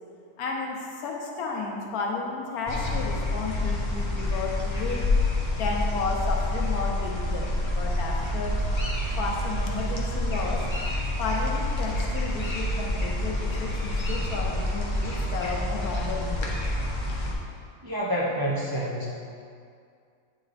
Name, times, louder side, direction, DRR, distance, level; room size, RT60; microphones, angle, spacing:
voice 1, 0.4-5.1 5.6-8.6 9.2-10.7 11.2-16.5, left 4 dB, 85° left, 0 dB, 1.3 m, -32 dB
sound 1, 2.7-17.3, left 1 dB, 30° left, 0.5 m, -28 dB
voice 2, 17.8-19.1, equal, 40° right, -5 dB, 0.3 m, -28 dB
8.7 x 3.2 x 4.1 m, 2.3 s
omnidirectional pair, 1.5 m